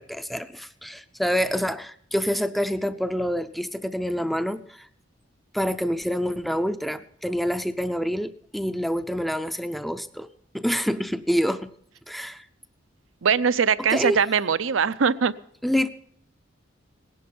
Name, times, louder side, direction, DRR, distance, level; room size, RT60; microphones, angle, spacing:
voice 1, 0.0-4.9 5.5-10.3 10.5-11.7 12.1-12.4 13.9-14.2 15.6-15.9, equal, ahead, 12 dB, 0.5 m, -27 dB
voice 2, 13.2-15.3, right 6 dB, 80° right, 15 dB, 0.6 m, -21 dB
18.0 x 11.0 x 5.4 m, 0.63 s
head